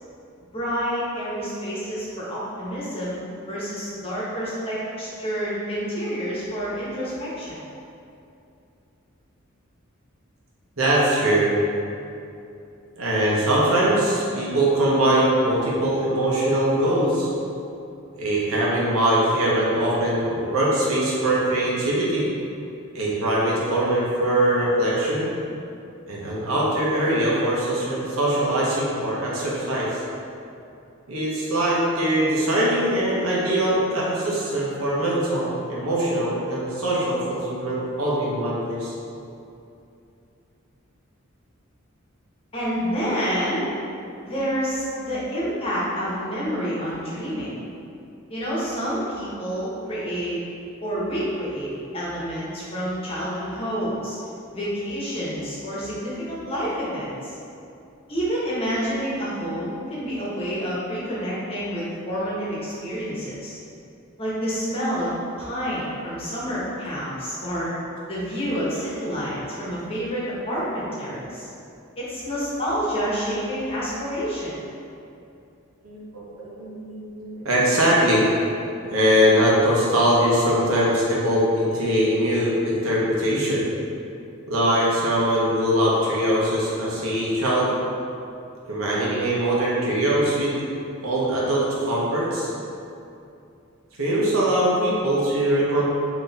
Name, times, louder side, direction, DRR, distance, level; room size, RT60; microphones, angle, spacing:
voice 1, 0.5-7.6 42.5-43.6 44.2-47.5 48.3-50.4 50.8-54.2 54.5-57.4 58.1-63.6 64.2-65.1 65.4-67.7 68.1-71.5 72.0-74.5, equal, 25° left, -8 dB, 1.1 m, -28 dB
voice 2, 10.8-11.5 13.0-17.3 18.2-22.3 22.9-25.3 26.1-30.0 31.1-38.9 75.8-78.3 78.9-83.6 84.5-87.7 88.7-90.6 91.0-92.5 94.0-95.8, right 1 dB, 85° right, -6 dB, 1.1 m, -22 dB
4.0 x 3.0 x 4.0 m, 2.6 s
head